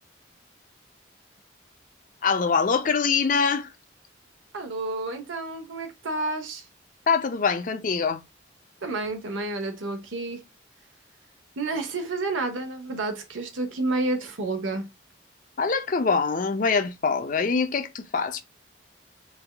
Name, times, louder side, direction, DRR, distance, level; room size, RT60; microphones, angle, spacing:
voice 1, 2.2-3.7 7.1-8.2 15.6-18.4, left 5 dB, 45° left, 0.4 m, -24 dB
voice 2, 4.5-6.7 8.8-10.4 11.6-14.9, right 2 dB, 85° right, 0.9 m, -30 dB
3.4 x 3.3 x 2.2 m
head